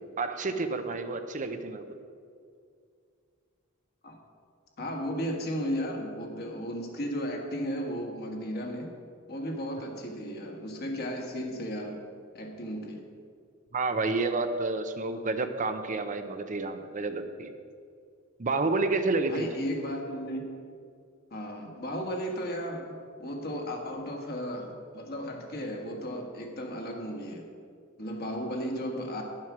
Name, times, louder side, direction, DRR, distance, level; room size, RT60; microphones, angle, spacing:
voice 1, 0.2-1.8 13.7-17.5 18.4-19.5, right 3 dB, 40° right, 8 dB, 0.6 m, -29 dB
voice 2, 4.8-8.9 9.3-12.0 12.3-13.0 19.3-20.5 21.3-27.4 28.0-29.2, equal, 50° left, 1 dB, 1.7 m, -35 dB
11.0 x 7.5 x 6.0 m, 2.3 s
head